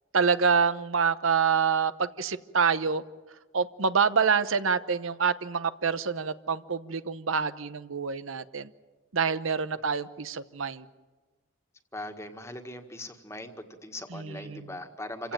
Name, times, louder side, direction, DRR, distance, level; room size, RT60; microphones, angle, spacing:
voice 1, 0.1-3.0 3.5-8.7 9.1-10.9 14.1-14.7 15.2-15.3, right 6 dB, 85° right, 13 dB, 0.9 m, -26 dB
voice 2, 11.9-15.3, left 1 dB, 15° left, 6 dB, 1.8 m, -40 dB
28.0 x 16.5 x 9.1 m, 1.3 s
head